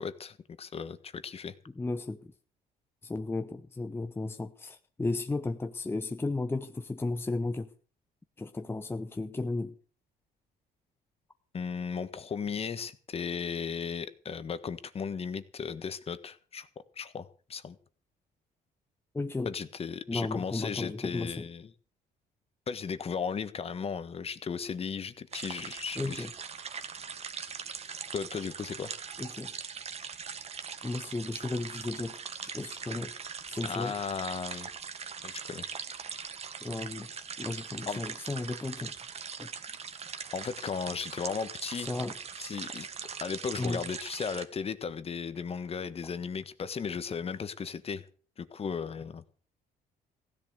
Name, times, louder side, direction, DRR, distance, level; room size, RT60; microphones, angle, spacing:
voice 1, 0.0-1.5 11.5-16.7 16.9-17.8 19.4-21.7 22.7-26.3 28.1-28.9 33.6-34.7 35.2-35.6 37.9-38.0 40.3-41.9 42.4-42.9 43.2-48.1 48.4-49.2, left 6 dB, 35° left, 1.5 m, -36 dB
voice 2, 1.8-2.3 3.0-7.7 8.4-9.7 19.1-19.5 20.1-21.4 26.0-26.3 29.2-29.5 30.8-33.1 33.5-33.9 36.6-37.1 37.4-39.0 39.4-39.5 41.8-42.1 43.6-43.8, left 2 dB, 15° left, 0.9 m, -34 dB
sound 1, 25.3-44.5, right 6 dB, 40° right, 1.7 m, -41 dB
16.0 x 11.0 x 6.6 m
cardioid pair, 110°, 17 cm